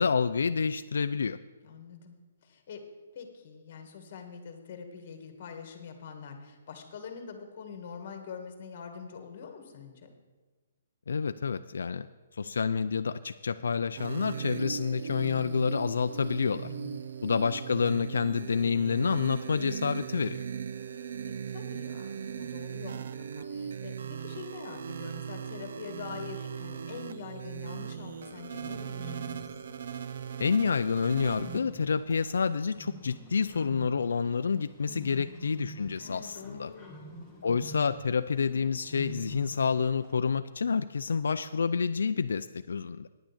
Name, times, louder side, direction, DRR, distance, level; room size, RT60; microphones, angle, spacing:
voice 1, 0.0-1.4 11.1-12.1 12.3-16.7 17.2-20.4 30.4-36.7 37.4-43.1, left 5 dB, 85° left, 10 dB, 0.4 m, -28 dB
voice 2, 1.6-2.2 2.4-2.8 3.1-10.1 16.6-17.1 20.9-29.2 34.8-35.3 36.0-37.0, left 6 dB, 40° left, 5 dB, 1.6 m, -45 dB
sound 1, 14.0-31.6, right 7 dB, 55° right, 0.5 m, -38 dB
Bird, 28.0-40.1, equal, 10° right, 1.6 m, -48 dB
10.0 x 6.2 x 8.4 m, 1.3 s
hypercardioid pair, 170°, 0 cm